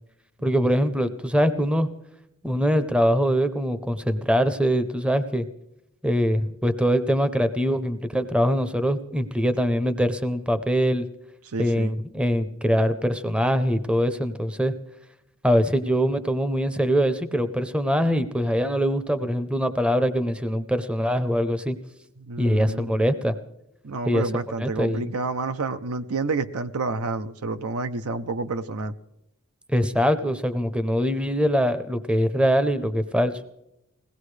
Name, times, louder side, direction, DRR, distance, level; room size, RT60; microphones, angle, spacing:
voice 1, 0.4-1.9 2.4-5.4 6.0-11.0 11.6-14.7 15.4-21.8 22.4-23.4 24.0-24.3 24.6-25.1 29.7-33.3, equal, 5° right, 11 dB, 0.6 m, -23 dB
voice 2, 11.5-12.0 22.2-22.9 23.8-28.9, right 3 dB, 75° right, 10 dB, 0.7 m, -29 dB
21.0 x 17.5 x 3.3 m, 0.86 s
head